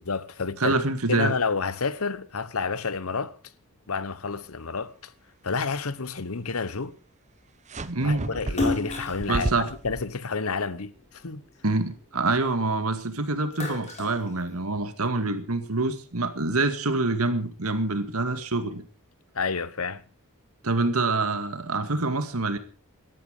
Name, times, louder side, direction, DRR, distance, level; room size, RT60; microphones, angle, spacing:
voice 1, 0.1-0.8 1.1-3.4 3.9-5.1 5.4-6.9 8.0-11.4 19.3-20.0, left 4 dB, 75° left, 1.1 m, -30 dB
voice 2, 0.6-1.3 7.9-8.3 9.3-9.7 11.6-18.8 20.6-22.6, right 3 dB, 80° right, 2.1 m, -26 dB
sound 1, 7.7-10.0, right 2 dB, 35° right, 0.9 m, -32 dB
Splash splatter, 8.5-11.0 11.5-12.9 13.3-15.0, left 2 dB, 35° left, 5.1 m, -33 dB
17.5 x 13.0 x 4.9 m
head